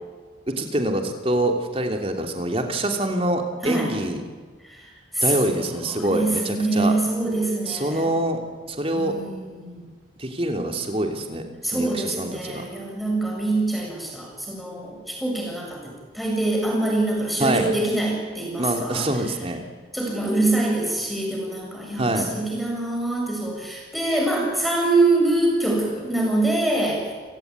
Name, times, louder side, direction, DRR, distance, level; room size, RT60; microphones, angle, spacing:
voice 1, 0.5-4.2 5.2-6.9 7.7-8.4 8.7-9.1 10.2-11.4 11.7-12.6 17.4-17.7 18.6-19.6 22.0-22.3, right 1 dB, 30° right, 4 dB, 3.1 m, -25 dB
voice 2, 3.6-3.9 5.1-5.4 5.8-8.1 8.9-9.9 11.6-19.1 19.9-27.1, right 2 dB, ahead, -2 dB, 7.3 m, -24 dB
29.5 x 17.5 x 9.6 m, 1.5 s
head